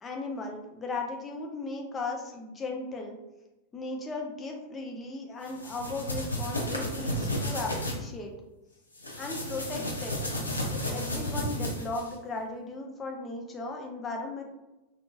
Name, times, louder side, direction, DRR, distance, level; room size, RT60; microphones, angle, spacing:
voice 1, 0.0-3.2 3.7-8.3 9.2-10.2 10.7-14.4, left 3 dB, 20° left, 1 dB, 0.5 m, -36 dB
sound 1, 5.5-8.0 9.0-12.1, equal, 80° left, 0.5 m, -32 dB
2.7 x 2.6 x 2.3 m, 1.0 s
figure-of-eight pair, 90°, 0 cm